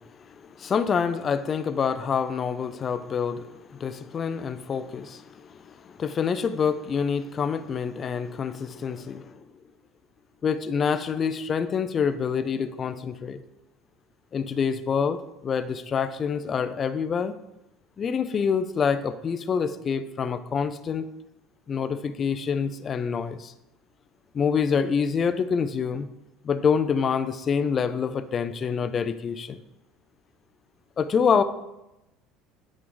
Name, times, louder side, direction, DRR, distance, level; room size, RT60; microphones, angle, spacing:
voice 1, 0.3-9.3 10.4-13.4 14.3-17.3 18.0-21.1 21.7-23.5 24.3-26.1 26.4-29.6 31.0-31.4, left 6 dB, 30° left, 11 dB, 0.4 m, -26 dB
8.6 x 4.6 x 3.8 m, 0.91 s
cardioid pair, 150°, 0 cm